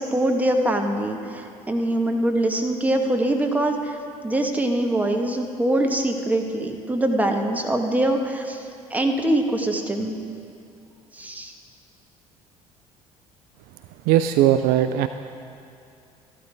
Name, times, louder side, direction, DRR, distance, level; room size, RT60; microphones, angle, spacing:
voice 1, 0.0-4.0 4.2-8.6 8.9-10.2 11.1-11.5, right 1 dB, 10° right, 3 dB, 1.2 m, -23 dB
voice 2, 14.1-15.1, right 12 dB, 55° right, 9 dB, 0.4 m, -18 dB
13.5 x 12.0 x 3.4 m, 2.5 s
figure-of-eight pair, 55°, 18 cm